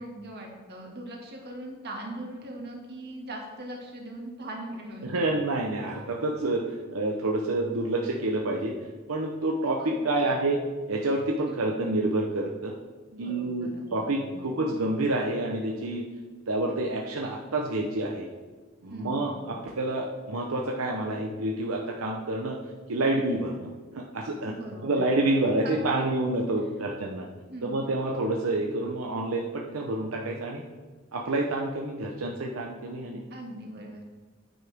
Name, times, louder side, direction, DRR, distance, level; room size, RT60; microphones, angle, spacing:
voice 1, 0.0-5.2 9.8-10.4 13.1-14.4 18.9-19.4 24.4-25.1 25.6-26.0 27.5-27.9 33.3-34.0, right 1 dB, 50° right, 0 dB, 2.1 m, -40 dB
voice 2, 5.0-6.6 6.9-8.7 9.1-10.6 10.9-12.7 13.2-16.1 16.5-18.3 18.8-22.6 22.9-24.5 24.8-27.3 27.6-30.6 31.1-33.2, right 2 dB, 80° right, 0 dB, 0.9 m, -28 dB
9.5 x 8.9 x 3.5 m, 1.4 s
head